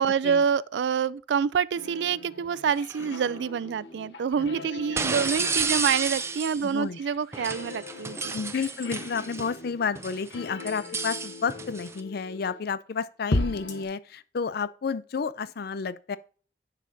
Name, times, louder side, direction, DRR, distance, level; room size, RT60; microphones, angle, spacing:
voice 1, 0.0-8.3, right 7 dB, 75° right, 0.3 m, -27 dB
sound 1, 1.7-12.6 13.3-13.8, left 2 dB, 85° left, 1.0 m, -37 dB
sound 2, 2.8-3.0 5.0-6.7 7.3-9.5 9.9-12.0, right 4 dB, 15° right, 0.5 m, -31 dB
voice 2, 5.2-5.6 6.6-7.0 8.3-16.2, left 5 dB, 60° left, 0.5 m, -31 dB
9.8 x 6.3 x 2.7 m
head